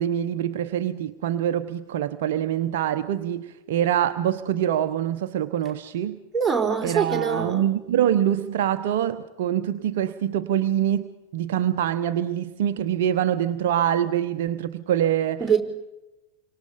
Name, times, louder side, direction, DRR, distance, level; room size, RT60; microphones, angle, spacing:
voice 1, 0.0-6.2 6.8-15.4, right 10 dB, 55° right, 1.0 m, -25 dB
voice 2, 6.3-7.6 15.4-15.6, right 6 dB, 10° right, 4.8 m, -23 dB
29.5 x 25.0 x 5.3 m
figure-of-eight pair, 90°, 0 cm